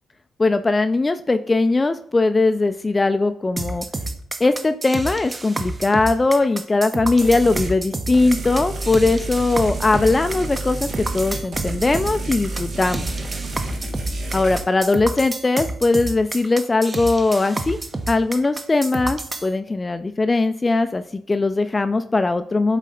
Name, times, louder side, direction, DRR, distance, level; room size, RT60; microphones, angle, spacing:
voice 1, 0.4-3.8 4.4-13.1 14.3-17.8 18.1-22.8, left 3 dB, 30° left, 9 dB, 0.4 m, -20 dB
sound 1, 3.6-19.5, right 2 dB, 30° right, 0.8 m, -29 dB
sound 2, 7.2-7.7 8.1-14.6, right 2 dB, 70° right, 1.5 m, -30 dB
7.5 x 4.1 x 3.8 m, 0.67 s
cardioid pair, 65°, 0 cm